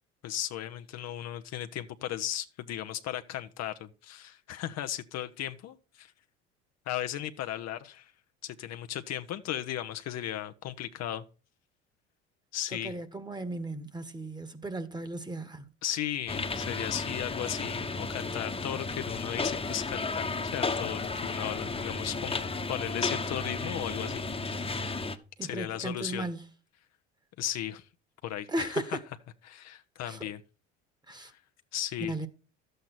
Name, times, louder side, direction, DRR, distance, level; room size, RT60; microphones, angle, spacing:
voice 1, 0.2-6.1 6.9-8.1 8.4-11.2 12.5-12.9 15.8-25.0 25.4-26.3 27.4-27.9 28.2-29.0 29.4-30.4 31.2-31.4 31.7-32.1, left 12 dB, 55° left, 0.9 m, -36 dB
voice 2, 12.8-15.7 25.4-26.4 28.5-29.0 30.0-30.2 31.1-31.3 32.0-32.3, right 2 dB, 15° right, 1.5 m, -36 dB
sound 1, 16.3-25.2, left 3 dB, 20° left, 1.3 m, -33 dB
12.0 x 7.9 x 4.2 m
hypercardioid pair, 70°, 32 cm